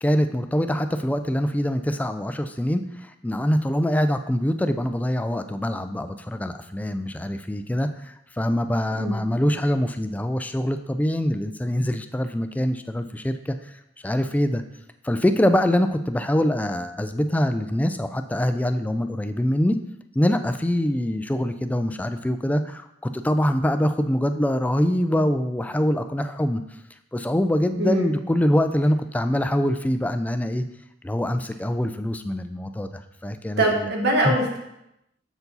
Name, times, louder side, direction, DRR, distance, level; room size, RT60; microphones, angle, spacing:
voice 1, 0.0-13.7 14.0-14.6 15.0-19.8 20.2-22.9 23.1-26.6 27.1-30.6 31.0-33.9 34.2-34.4, equal, 10° left, 8 dB, 0.3 m, -24 dB
voice 2, 27.8-28.1 33.6-34.6, right 1 dB, 60° right, 0 dB, 1.4 m, -22 dB
6.8 x 4.6 x 4.0 m, 0.83 s
head